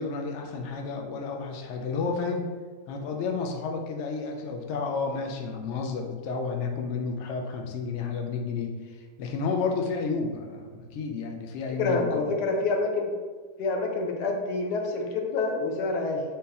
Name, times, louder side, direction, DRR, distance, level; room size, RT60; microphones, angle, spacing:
voice 1, 0.0-2.5 2.9-12.3, left 4 dB, 65° left, 2 dB, 0.7 m, -31 dB
voice 2, 11.8-13.1 13.6-16.2, left 3 dB, 85° left, 2 dB, 1.3 m, -27 dB
3.7 x 2.7 x 4.1 m, 1.5 s
omnidirectional pair, 1.7 m